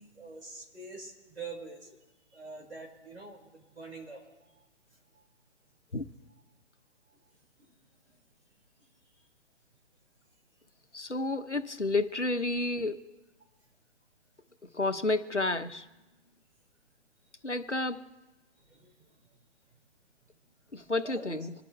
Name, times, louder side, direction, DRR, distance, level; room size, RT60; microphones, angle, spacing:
voice 1, 0.0-1.9 2.3-4.2 18.7-18.9 21.0-21.4, right 3 dB, 70° right, 5.4 m, -45 dB
voice 2, 10.9-13.0 14.7-15.9 17.4-18.0 20.7-21.5, left 2 dB, 90° left, 1.2 m, -30 dB
26.5 x 11.5 x 3.3 m
figure-of-eight pair, 130°, 34 cm